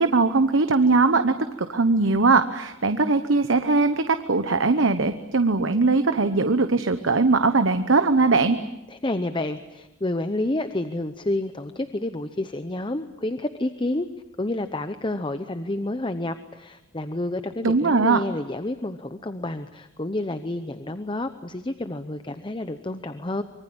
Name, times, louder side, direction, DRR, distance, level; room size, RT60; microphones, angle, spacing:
voice 1, 0.0-8.6 17.6-18.2, right 3 dB, 75° right, 9 dB, 1.1 m, -20 dB
voice 2, 8.9-14.1 14.4-23.4, left 1 dB, 25° left, 10 dB, 0.8 m, -29 dB
25.0 x 23.0 x 8.8 m, 0.95 s
head